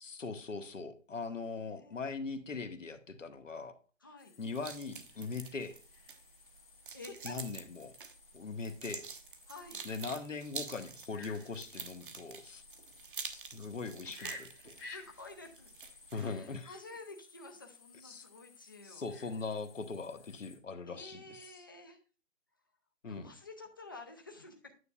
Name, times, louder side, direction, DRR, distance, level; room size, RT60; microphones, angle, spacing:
voice 1, 0.0-3.7 4.4-5.8 7.2-7.9 8.3-9.1 9.8-12.6 13.3-14.4 14.8-14.9 16.1-16.7 18.0-18.2 18.8-21.5 23.0-23.2, left 4 dB, 75° left, 8 dB, 1.4 m, -41 dB
voice 2, 1.1-2.0 4.0-4.3 6.9-7.4 9.5-9.9 14.0-14.3 14.8-15.7 16.1-19.1 20.9-22.0 23.1-24.7, left 3 dB, 15° left, 3 dB, 0.6 m, -51 dB
sound 1, 4.2-20.6, left 2 dB, 45° left, 1.6 m, -56 dB
sound 2, 4.6-16.3, right 5 dB, 40° right, 0.9 m, -48 dB
9.5 x 6.8 x 2.4 m, 0.37 s
figure-of-eight pair, 155°, 39 cm